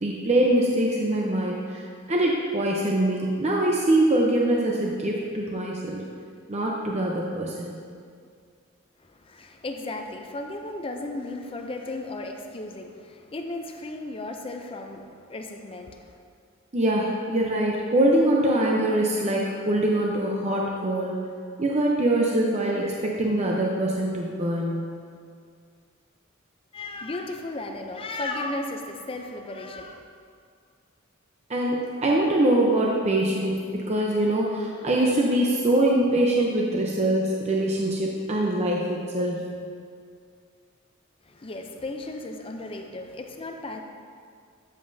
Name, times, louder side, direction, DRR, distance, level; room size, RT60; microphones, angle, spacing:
voice 1, 0.0-1.8 2.1-6.0 6.5-7.8 16.7-21.2 21.6-24.9 31.5-39.4, right 1 dB, 35° right, -2 dB, 0.7 m, -23 dB
voice 2, 9.0-16.2 26.7-30.0 41.2-43.8, left 2 dB, 25° left, 4 dB, 0.5 m, -35 dB
12.5 x 7.6 x 2.7 m, 2.2 s
head